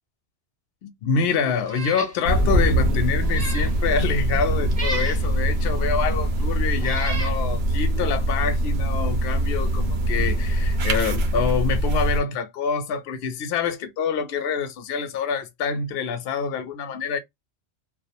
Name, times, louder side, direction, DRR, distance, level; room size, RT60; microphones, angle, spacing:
voice 1, 0.8-17.2, left 6 dB, 65° left, 0.7 m, -26 dB
Meow, 1.6-2.2 2.6-2.7 3.2-3.7 4.7-5.2 6.1-6.2 6.8-7.4, right 1 dB, 40° right, 0.7 m, -32 dB
sound 1, 2.2-12.2, right 1 dB, 70° right, 0.9 m, -23 dB
2.4 x 2.0 x 2.7 m
omnidirectional pair, 1.2 m